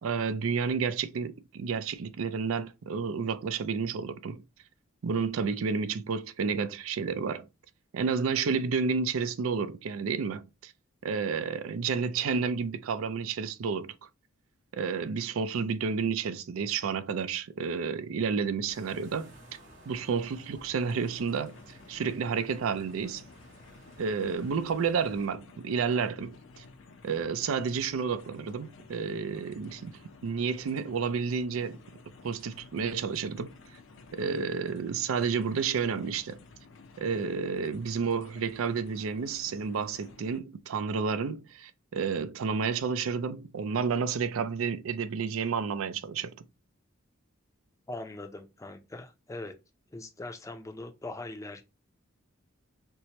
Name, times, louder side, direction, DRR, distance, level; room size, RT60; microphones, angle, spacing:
voice 1, 0.0-4.4 5.0-7.5 7.9-10.7 11.0-13.9 14.7-19.3 19.9-23.2 24.0-26.6 27.0-31.8 32.2-33.6 34.1-36.4 37.0-46.4, right 5 dB, 85° right, 0.4 m, -31 dB
sound 1, 18.7-25.3, right 1 dB, 60° right, 1.9 m, -55 dB
sound 2, 20.8-40.4, left 3 dB, 70° left, 0.6 m, -53 dB
voice 2, 47.9-49.5 49.9-51.6, left 2 dB, 15° left, 0.5 m, -41 dB
4.4 x 2.1 x 2.7 m
head